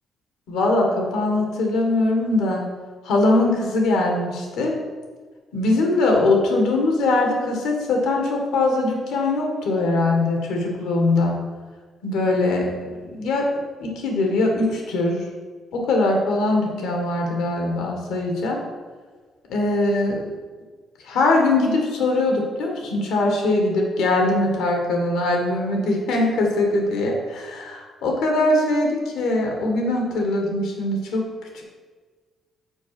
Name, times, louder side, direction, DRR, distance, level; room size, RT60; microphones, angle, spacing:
voice 1, 0.5-2.6 3.0-4.7 5.5-11.4 12.0-12.7 13.0-13.5 13.8-15.2 15.7-18.6 19.5-20.2 21.0-31.3 31.5-31.6, left 2 dB, 90° left, 1 dB, 1.7 m, -21 dB
6.3 x 4.9 x 5.9 m, 1.5 s
cardioid pair, 90°, 0 cm